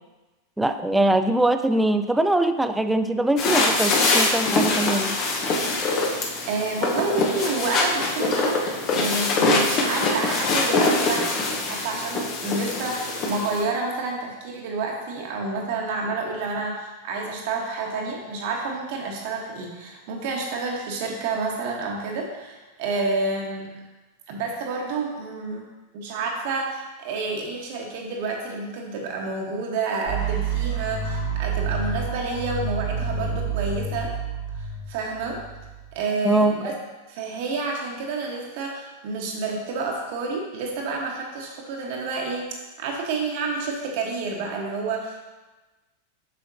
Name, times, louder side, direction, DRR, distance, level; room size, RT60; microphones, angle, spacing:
voice 1, 0.6-5.2 36.2-36.7, right 1 dB, 5° right, 9 dB, 0.4 m, -22 dB
sound 1, 3.4-13.6, left 2 dB, 35° left, 1.0 m, -23 dB
voice 2, 6.5-23.7 24.3-25.7 25.9-34.1 34.5-35.4 35.9-36.7 37.1-42.5 42.8-45.3, right 3 dB, 50° right, 0 dB, 1.3 m, -29 dB
sound 2, 30.0-36.0, right 5 dB, 75° left, 2.3 m, -29 dB
7.7 x 6.4 x 2.7 m, 1.2 s
figure-of-eight pair, 90°, 0 cm